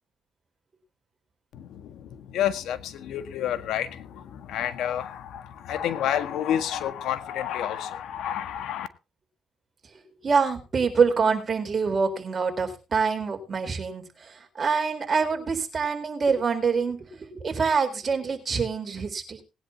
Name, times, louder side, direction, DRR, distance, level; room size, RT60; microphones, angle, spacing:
voice 1, 1.5-8.9, left 10 dB, 80° left, 1.6 m, -30 dB
voice 2, 10.2-19.4, right 5 dB, 40° right, 4.1 m, -25 dB
20.0 x 10.5 x 2.9 m
cardioid pair, 90°, 0 cm